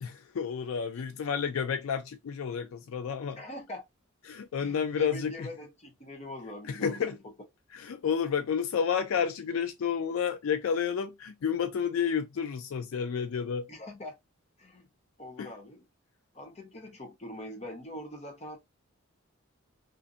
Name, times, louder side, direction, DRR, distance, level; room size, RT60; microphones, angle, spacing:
voice 1, 0.0-3.4 4.3-5.5 6.6-7.1 7.7-13.7 15.4-15.5, left 7 dB, 75° left, 0.3 m, -30 dB
voice 2, 3.4-3.8 4.6-7.2 13.7-14.2 14.6-14.9 15.2-15.8 16.3-18.6, equal, 30° left, 0.7 m, -43 dB
2.5 x 2.5 x 2.5 m
head